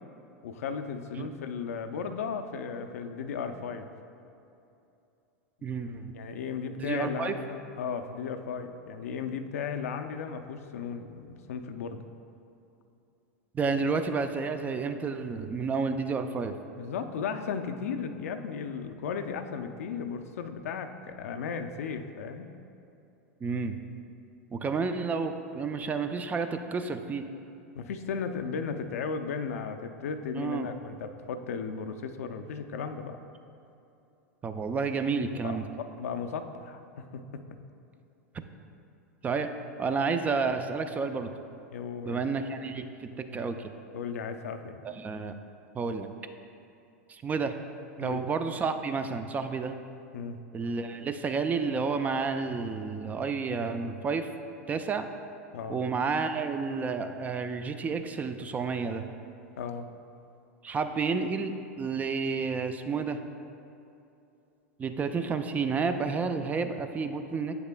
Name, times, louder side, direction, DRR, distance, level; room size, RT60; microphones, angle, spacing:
voice 1, 0.4-3.9 6.1-12.0 16.8-22.5 27.7-33.2 35.4-37.4 41.7-42.3 43.9-44.8 48.0-48.2 50.1-50.4 55.5-55.8 59.6-59.9, left 6 dB, 80° left, 7 dB, 0.4 m, -35 dB
voice 2, 5.6-6.1 6.8-7.4 13.5-16.6 23.4-23.8 24.5-27.3 30.3-30.7 34.4-35.6 39.2-39.5 39.8-41.3 42.1-43.7 44.8-45.4 45.7-46.1 47.1-47.5 48.0-49.7 50.5-54.3 54.7-55.1 55.7-59.0 60.6-63.2 64.8-67.6, right 4 dB, 20° right, 8 dB, 0.3 m, -30 dB
7.9 x 6.9 x 2.2 m, 2.7 s
hypercardioid pair, 110°, 8 cm